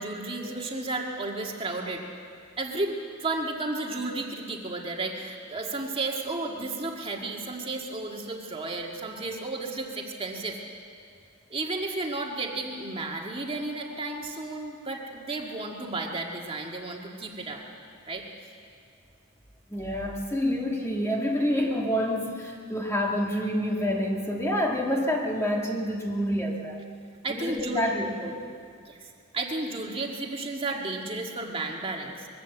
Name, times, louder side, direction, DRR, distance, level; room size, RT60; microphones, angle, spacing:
voice 1, 0.0-2.0 2.6-10.6 11.5-17.6 18.1-18.2 27.2-27.9 28.8-32.3, right 2 dB, 25° right, 0 dB, 1.8 m, -33 dB
voice 2, 19.7-26.8 27.3-28.4, equal, 15° left, -1 dB, 1.5 m, -28 dB
21.5 x 15.0 x 8.1 m, 2.3 s
head